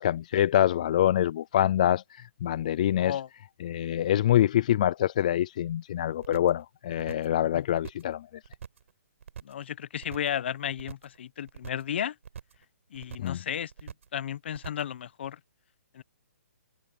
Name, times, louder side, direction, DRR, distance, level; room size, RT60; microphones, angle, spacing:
voice 1, 0.0-3.2 3.6-8.3 13.2-13.4, left 12 dB, 30° left, 0.3 m, -25 dB
voice 2, 3.0-3.3 7.5-7.7 9.4-12.1 12.9-15.4 15.9-16.0, left 9 dB, 45° left, 0.8 m, -34 dB
sound 1, 6.2-6.6 6.9-7.4 7.7-8.1 8.4-8.9 9.2-9.6 9.9-10.4 10.7-11.2 11.5-11.9 12.2-12.6 12.9-13.4 13.7-14.2 14.5-14.9 15.2-15.3, right 7 dB, 55° right, 5.8 m, -44 dB
hypercardioid pair, 165°, 8 cm